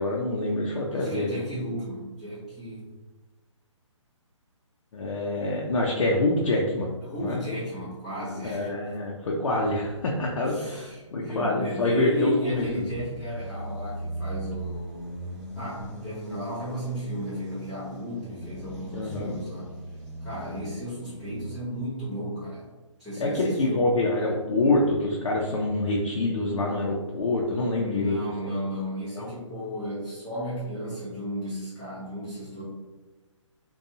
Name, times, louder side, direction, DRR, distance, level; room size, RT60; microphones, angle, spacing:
voice 1, 0.0-1.3 4.9-6.9 7.2-7.4 8.4-12.9 18.9-19.3 23.2-28.2 29.2-29.3, left 2 dB, 75° left, -2 dB, 0.5 m, -26 dB
voice 2, 0.9-2.8 7.0-8.7 10.4-15.1 15.6-19.7 20.2-22.6 23.0-23.9 27.8-32.6, equal, ahead, -16 dB, 0.6 m, -34 dB
sound 1, 9.4-11.1 11.7-21.6, right 1 dB, 30° right, 1.0 m, -39 dB
2.6 x 2.2 x 2.7 m, 1.2 s
hypercardioid pair, 180°, 16 cm